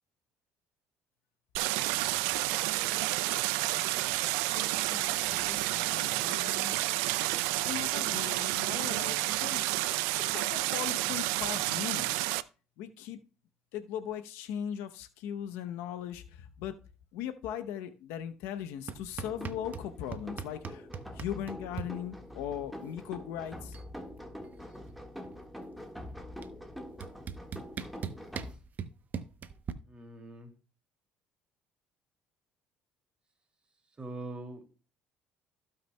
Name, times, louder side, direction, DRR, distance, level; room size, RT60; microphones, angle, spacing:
Stream, 1.5-12.4, right 18 dB, 90° right, 0.4 m, -30 dB
voice 1, 4.5-6.8 7.6-9.7 10.3-12.2 12.8-13.2 13.7-16.7 17.1-20.9 21.1-23.8, left 10 dB, 85° left, 0.8 m, -39 dB
sound 1, 18.9-19.9 20.1-21.9 23.2-23.3 23.5-23.9 24.2-25.5 26.4-26.5 27.0-29.7, right 7 dB, 45° right, 0.8 m, -39 dB
sound 2, 19.2-28.5, left 1 dB, ahead, 1.6 m, -45 dB
voice 2, 29.9-30.5 34.0-34.7, right 2 dB, 25° right, 2.5 m, -42 dB
16.0 x 5.8 x 2.2 m
supercardioid pair, 90°, 4 cm